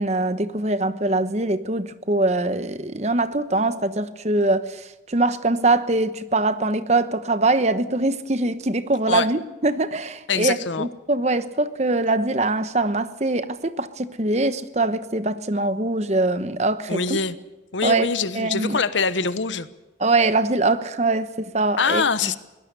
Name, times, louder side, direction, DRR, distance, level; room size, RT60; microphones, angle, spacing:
voice 1, 0.0-17.2 17.8-18.8 20.0-22.0, right 2 dB, 35° right, 1.0 m, -23 dB
voice 2, 10.3-10.9 16.9-17.3 17.7-19.7 21.8-22.4, left 5 dB, 80° left, 1.1 m, -23 dB
22.5 x 17.5 x 6.8 m
head